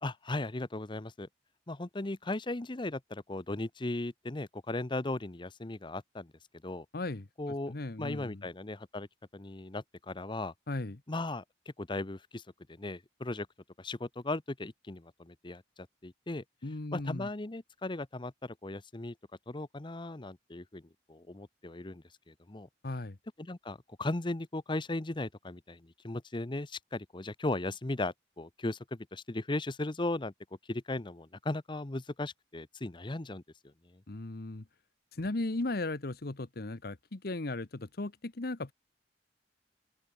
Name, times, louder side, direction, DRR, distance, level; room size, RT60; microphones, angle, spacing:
voice 1, 0.0-1.3 1.7-6.3 6.6-6.8 7.4-9.1 9.3-10.5 11.1-11.4 11.8-12.4 12.7-13.5 13.8-15.6 16.0-16.4 16.9-19.1 19.5-20.8 21.1-22.7 23.4-30.3 30.7-33.4 33.9-34.0, left 2 dB, 30° left, 0.9 m, -37 dB
voice 2, 6.9-7.3 7.7-8.4 10.7-11.0 16.6-17.3 22.8-23.2 34.1-34.6 35.1-38.7, left 2 dB, 60° left, 1.1 m, -36 dB
head